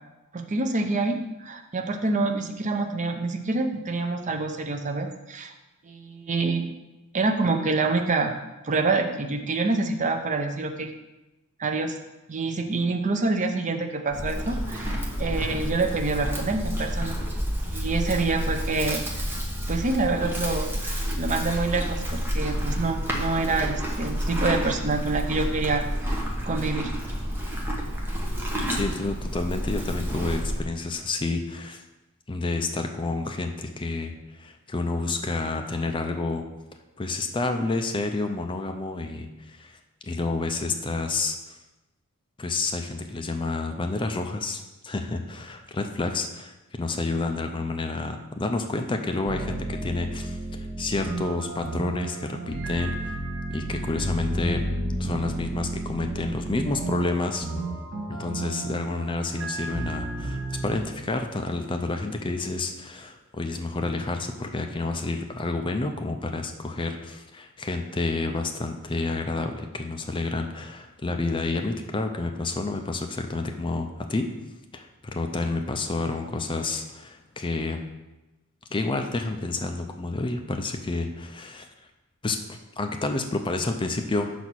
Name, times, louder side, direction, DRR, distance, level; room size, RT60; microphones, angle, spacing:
voice 1, 0.3-5.5 5.8-6.7 7.1-8.3 8.6-10.9 11.6-12.0 12.3-17.2 17.7-19.3 19.7-26.2 26.4-26.9, right 3 dB, 35° right, 5 dB, 0.5 m, -27 dB
Livestock farm animals working animals, 14.1-30.6, equal, 10° right, 0.9 m, -29 dB
voice 2, 28.7-31.8 32.3-36.4 37.0-39.8 40.0-41.6 42.4-53.2 53.5-54.6 55.0-57.5 58.1-74.3 74.7-77.8 78.7-81.7 82.2-84.3, left 3 dB, 20° left, 5 dB, 0.4 m, -29 dB
sound 1, 49.2-60.8, right 2 dB, 55° right, 2.2 m, -32 dB
5.8 x 4.1 x 6.1 m, 1.0 s
head